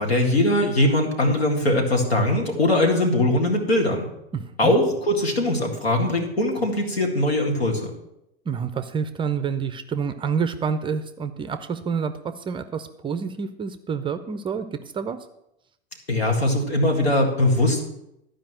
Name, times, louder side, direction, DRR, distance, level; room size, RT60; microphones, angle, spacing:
voice 1, 0.0-4.0 4.6-7.9 16.1-17.8, left 1 dB, 80° left, 2 dB, 2.3 m, -21 dB
voice 2, 4.3-4.7 8.5-15.2, right 6 dB, 15° right, 10 dB, 0.5 m, -28 dB
12.0 x 5.1 x 7.6 m, 0.83 s
figure-of-eight pair, 90°, 31 cm